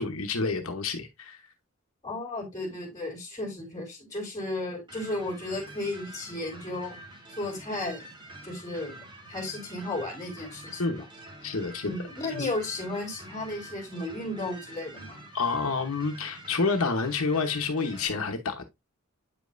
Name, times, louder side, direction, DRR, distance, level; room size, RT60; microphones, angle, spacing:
voice 1, 0.0-1.4 10.8-11.0 11.4-11.9 12.3-12.5 15.3-18.6, left 4 dB, 75° left, 1.0 m, -28 dB
voice 2, 2.0-7.0 7.4-8.0 8.4-11.0 11.8-15.2, left 2 dB, 20° left, 3.0 m, -34 dB
sound 1, 4.9-18.1, right 1 dB, 25° right, 2.1 m, -47 dB
8.7 x 5.3 x 2.6 m
head